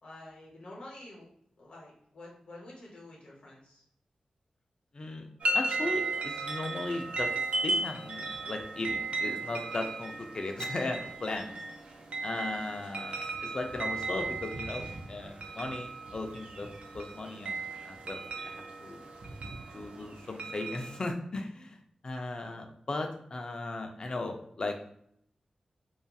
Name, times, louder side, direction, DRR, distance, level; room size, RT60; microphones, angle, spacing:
voice 1, 0.0-1.3 1.6-3.8, left 1 dB, 60° left, -4 dB, 0.8 m, -49 dB
voice 2, 4.9-5.3 5.5-11.6 12.2-16.7 16.9-17.6 17.8-18.2 18.5-19.0 19.7-24.8, left 2 dB, 40° left, 4 dB, 0.4 m, -37 dB
sound 1, 5.4-21.1, right 2 dB, 70° right, 0.3 m, -36 dB
2.7 x 2.3 x 2.2 m, 0.70 s
wide cardioid pair, 120°, 2 cm